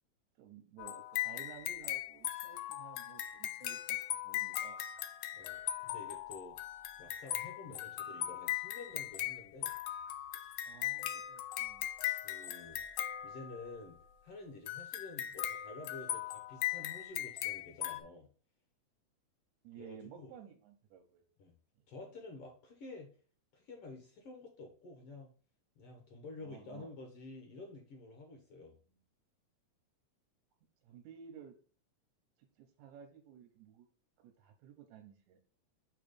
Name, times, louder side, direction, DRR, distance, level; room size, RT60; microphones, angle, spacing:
voice 1, 0.4-4.0 4.2-4.8 7.7-7.8 10.6-11.9 19.6-21.2 26.4-26.9 28.9-29.0 30.8-31.6 32.4-33.9 34.2-35.4, right 8 dB, 75° right, 3 dB, 2.0 m, -55 dB
sound 1, 0.8-13.9 14.7-18.0, left 13 dB, 90° left, 2.1 m, -39 dB
voice 2, 5.3-6.6 7.0-9.8 12.2-12.8 13.2-14.0 14.2-18.3 19.8-20.3 21.4-21.5 21.9-23.1 23.5-25.3 25.8-28.8, left 3 dB, 65° left, 2 dB, 1.6 m, -50 dB
6.3 x 3.0 x 5.0 m, 0.40 s
omnidirectional pair, 3.5 m